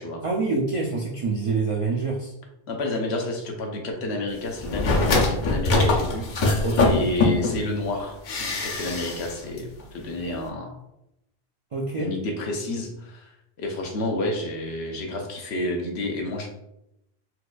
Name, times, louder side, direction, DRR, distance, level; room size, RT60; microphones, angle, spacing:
voice 1, 0.2-2.3 6.6-6.9 11.7-12.1, right 3 dB, 60° right, -3 dB, 0.3 m, -26 dB
voice 2, 2.7-6.3 6.9-10.8 12.0-13.3 13.6-16.5, left 2 dB, 80° left, 2 dB, 0.9 m, -30 dB
sound 1, 4.6-7.6 8.3-9.3 9.6-9.7, left 3 dB, 55° left, 0.6 m, -22 dB
4.3 x 2.4 x 2.2 m, 0.84 s
omnidirectional pair, 1.1 m